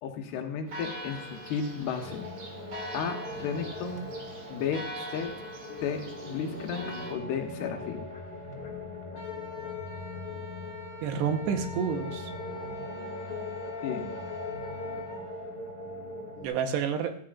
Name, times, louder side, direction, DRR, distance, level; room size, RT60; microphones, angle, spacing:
voice 1, 0.0-2.2 2.9-4.1 4.5-5.3 5.8-8.0 13.8-14.0, left 6 dB, 75° left, 4 dB, 3.2 m, -33 dB
Church bell, 0.7-7.1, right 1 dB, 45° right, 3.0 m, -42 dB
sound 1, 2.0-16.5, left 2 dB, 25° left, 1.4 m, -40 dB
Wind instrument woodwind instrument, 9.1-15.2, left 3 dB, 45° left, 3.4 m, -45 dB
voice 2, 11.0-12.3 16.4-17.2, right 7 dB, 85° right, 6 dB, 3.2 m, -29 dB
14.5 x 13.0 x 2.5 m, 0.65 s
omnidirectional pair, 4.8 m